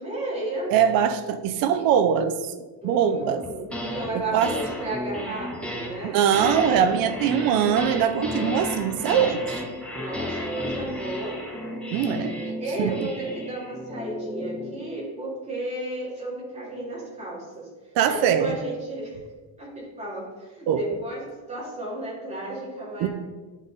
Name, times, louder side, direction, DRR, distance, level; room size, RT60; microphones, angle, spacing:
voice 1, 0.0-0.7 1.7-1.8 2.8-6.2 9.9-11.4 12.6-17.7 18.1-19.2 19.6-21.2 21.5-23.1, right 1 dB, 15° right, -6 dB, 2.2 m, -33 dB
voice 2, 0.7-2.5 2.8-3.5 4.1-4.5 6.0-9.6 11.9-12.3 12.8-12.9 18.0-18.5 20.7-20.8 23.0-23.1, right 8 dB, 50° right, 10 dB, 0.6 m, -22 dB
sound 1, 3.4-4.1 4.4-14.8, left 1 dB, 5° left, 0.4 m, -33 dB
10.0 x 3.7 x 3.9 m, 1.3 s
cardioid pair, 180°, 45 cm